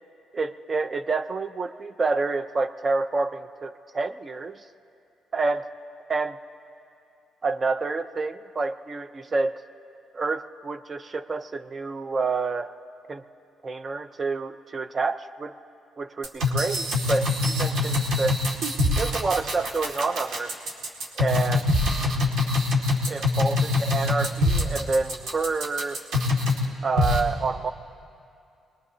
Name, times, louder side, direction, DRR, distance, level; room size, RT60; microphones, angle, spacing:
voice 1, 0.3-4.6 5.3-5.7 6.1-6.4 7.4-9.6 10.1-12.7 13.1-13.2 13.6-15.6 16.0-18.4 19.0-20.5 21.1-21.7 23.1-26.0 26.8-27.7, right 3 dB, 35° right, 11 dB, 0.6 m, -28 dB
sound 1, 16.2-26.6 27.0-27.2, left 2 dB, 75° right, 2.0 m, -24 dB
23.5 x 21.0 x 2.8 m, 2.6 s
cardioid pair, 90°, 0 cm